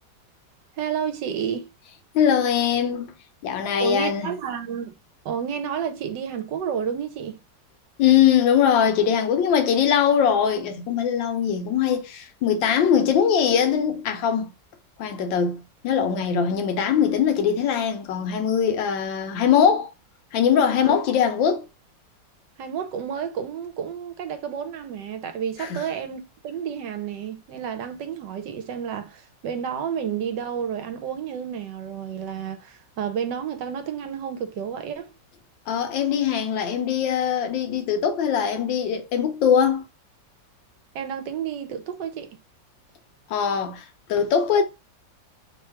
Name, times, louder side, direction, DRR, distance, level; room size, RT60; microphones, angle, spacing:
voice 1, 0.8-1.7 3.8-4.9 5.2-7.4 20.8-21.0 22.6-35.1 40.9-42.3, right 8 dB, 75° right, 1.3 m, -30 dB
voice 2, 2.1-3.1 3.4-4.3 8.0-14.5 15.0-19.9 20.3-21.7 25.6-25.8 35.7-39.8 43.3-44.6, left 8 dB, 85° left, 1.4 m, -21 dB
3.4 x 2.3 x 4.4 m
omnidirectional pair, 2.0 m